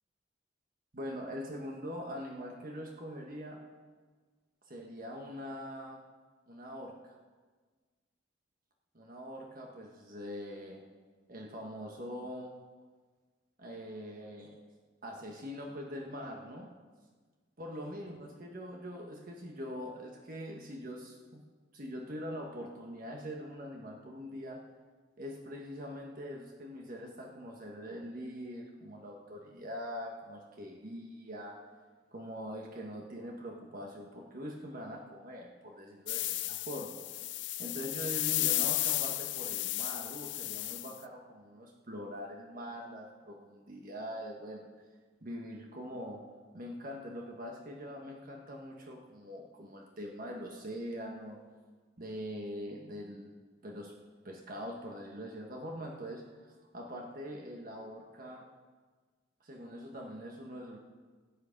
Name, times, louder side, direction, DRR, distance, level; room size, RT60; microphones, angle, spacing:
voice 1, 0.9-3.6 4.7-6.0 6.5-7.2 8.9-10.8 11.3-12.5 13.6-14.5 15.0-16.7 17.6-21.4 21.7-24.6 25.2-31.6 32.1-37.0 37.6-44.7 45.2-46.2 46.5-51.4 52.0-53.4 53.6-53.9 54.2-58.4 59.4-60.8, equal, 50° right, 0 dB, 1.4 m, -43 dB
sound 1, 36.1-41.0, left 16 dB, 70° left, 0.5 m, -33 dB
18.5 x 8.7 x 5.2 m, 1.4 s
head